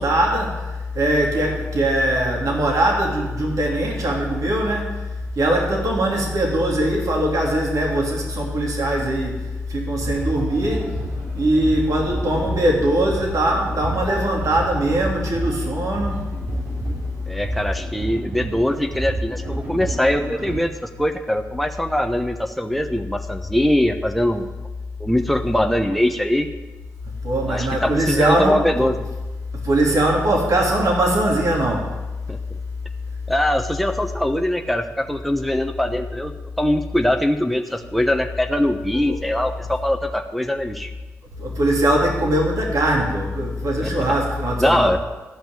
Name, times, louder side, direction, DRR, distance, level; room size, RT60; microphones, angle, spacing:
voice 1, 0.0-5.0 5.3-10.9 11.3-16.2 27.2-28.6 29.6-32.0 39.1-39.2 41.4-44.9, right 1 dB, 60° right, -1 dB, 3.2 m, -21 dB
sound 1, 9.9-20.5, right 2 dB, 90° right, 4.2 m, -31 dB
voice 2, 17.3-24.5 25.0-26.5 27.5-29.1 32.3-32.6 33.3-36.3 36.6-40.9 43.8-43.9 44.6-45.0, left 1 dB, ahead, 5 dB, 1.0 m, -22 dB
12.5 x 5.9 x 8.6 m, 1.2 s
supercardioid pair, 40°, 6 cm